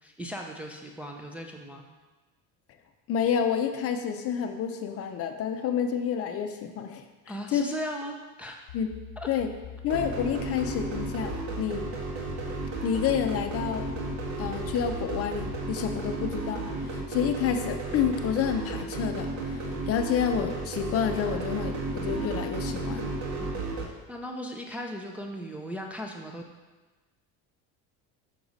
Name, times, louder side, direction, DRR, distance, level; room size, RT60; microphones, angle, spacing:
voice 1, 0.0-1.9 7.3-8.6 9.2-9.3 23.4-23.6 24.1-26.4, equal, 5° right, 0 dB, 0.5 m, -37 dB
voice 2, 3.1-7.0 7.5-7.7 8.7-8.9 9.3-9.5 9.8-11.9 12.8-13.8 14.4-23.1, left 8 dB, 45° left, 6 dB, 0.6 m, -29 dB
sound 1, 8.7-16.4, left 6 dB, 75° left, 0.9 m, -43 dB
let the organ do the talking (blade style), 9.9-23.8, right 3 dB, 55° right, 1.7 m, -33 dB
6.5 x 6.0 x 4.0 m, 1.2 s
cardioid pair, 135°, 34 cm